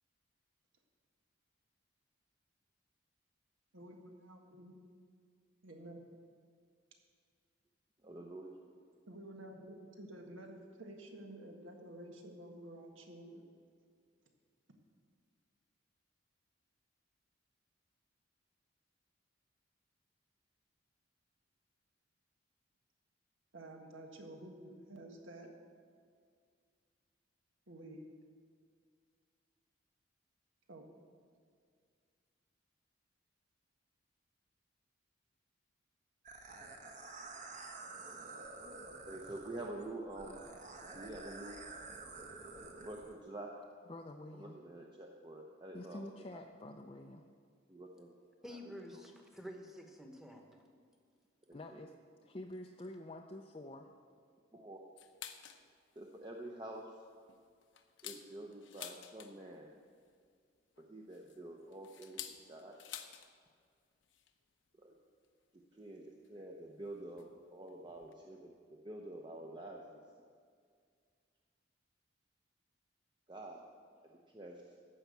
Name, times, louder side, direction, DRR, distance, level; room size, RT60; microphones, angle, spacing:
voice 1, 3.7-4.8 5.6-6.0 9.1-13.4 23.5-25.5 27.7-28.1 30.7-30.8, right 1 dB, 85° right, 2 dB, 1.6 m, -51 dB
voice 2, 8.0-8.6 39.0-40.4 40.9-41.6 42.8-43.5 44.3-46.4 47.7-48.1 48.5-48.6 48.9-49.0 51.5-51.8 54.5-54.8 56.0-57.1 58.0-59.7 60.8-62.8 64.8-65.0 65.5-70.0 73.3-73.6 74.0-74.7, right 1 dB, 25° right, 0 dB, 0.7 m, -48 dB
sound 1, 36.3-43.1, right 3 dB, 40° right, 1.1 m, -49 dB
voice 3, 43.9-44.6 45.7-47.3 51.5-51.9 52.2-53.9, left 1 dB, 30° left, 2 dB, 0.5 m, -48 dB
voice 4, 48.4-50.6, equal, ahead, 2 dB, 1.1 m, -49 dB
sound 2, 55.0-55.6 56.1-56.2 56.6-56.8 57.3-59.6 60.8-63.3 63.6-63.7 64.0-64.3 65.2-65.3 66.2-66.3 67.2-67.3 67.7-67.8 67.9-68.1, left 10 dB, 70° left, 0.8 m, -50 dB
14.0 x 5.7 x 8.1 m, 2.1 s
head